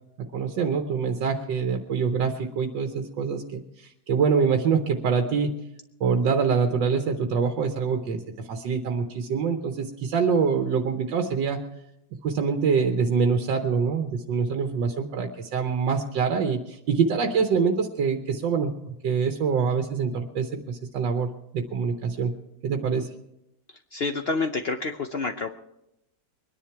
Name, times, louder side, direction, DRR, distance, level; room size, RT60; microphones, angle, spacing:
voice 1, 0.3-5.6 6.0-8.2 8.5-11.6 12.2-18.7 19.0-22.3 22.6-23.1, right 5 dB, 80° right, 5 dB, 1.7 m, -25 dB
voice 2, 23.9-25.5, left 3 dB, 60° left, 6 dB, 0.6 m, -28 dB
22.5 x 10.5 x 4.6 m, 0.83 s
omnidirectional pair, 1.9 m